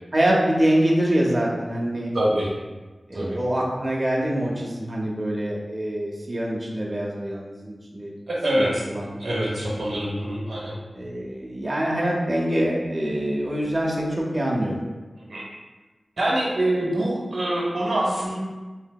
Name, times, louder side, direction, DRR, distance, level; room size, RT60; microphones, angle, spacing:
voice 1, 0.1-2.1 3.1-8.1 8.5-9.1 9.5-9.8 10.9-14.8, right 1 dB, 30° right, -3 dB, 0.8 m, -25 dB
voice 2, 2.1-2.5 3.1-3.4 8.3-8.8 9.2-10.8 15.2-15.4 16.2-18.4, right 1 dB, 70° right, -5 dB, 0.7 m, -25 dB
3.3 x 2.7 x 2.2 m, 1.2 s
cardioid pair, 40°, 0 cm